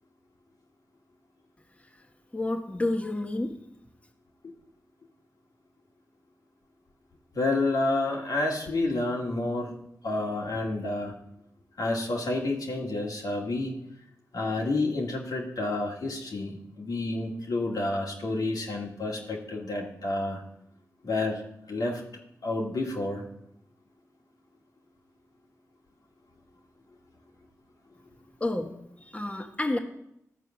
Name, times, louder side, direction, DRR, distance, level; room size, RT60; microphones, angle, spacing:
voice 1, 2.3-3.6 28.4-29.8, left 2 dB, 20° left, 2 dB, 1.5 m, -30 dB
voice 2, 7.3-9.7 10.0-11.1 11.8-13.7 14.3-20.4 21.0-21.4 21.7-22.0 22.4-23.2, left 2 dB, 75° left, -1 dB, 2.0 m, -29 dB
12.5 x 4.5 x 7.2 m, 0.77 s
cardioid pair, 45°, 7 cm